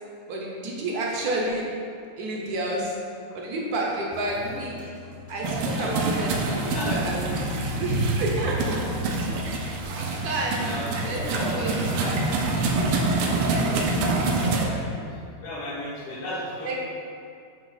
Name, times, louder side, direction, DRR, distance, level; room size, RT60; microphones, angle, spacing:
voice 1, 0.3-1.6 2.2-3.0 3.3-4.9 5.3-6.6 6.9-7.3 7.8-8.8 9.4-10.6 11.0-12.2 13.4-13.6 16.6-16.8, right 2 dB, 60° right, -2 dB, 1.1 m, -29 dB
sound 1, 4.1-14.8, equal, 30° right, 0.7 m, -38 dB
voice 2, 4.3-4.6 5.7-6.2 6.5-7.0 10.6-12.2 13.7-13.8 14.2-16.8, left 1 dB, 75° left, -5 dB, 2.1 m, -36 dB
sound 2, 5.4-14.7, right 2 dB, 80° right, 1.6 m, -26 dB
7.5 x 3.0 x 4.9 m, 2.4 s
omnidirectional pair, 2.4 m